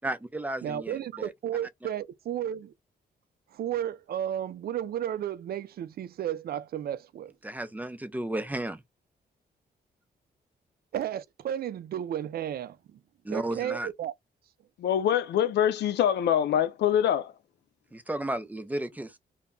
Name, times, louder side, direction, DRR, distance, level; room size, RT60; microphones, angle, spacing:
voice 1, 0.0-1.3 7.4-8.8 13.2-13.9 17.9-19.2, right 1 dB, 10° right, 0.4 m, -33 dB
voice 2, 0.6-2.7 3.5-7.3 10.9-13.0 13.3-14.1, right 10 dB, 65° right, 0.4 m, -33 dB
voice 3, 14.8-17.3, left 10 dB, 80° left, 0.4 m, -24 dB
2.2 x 2.0 x 3.6 m
cardioid pair, 90°, 17 cm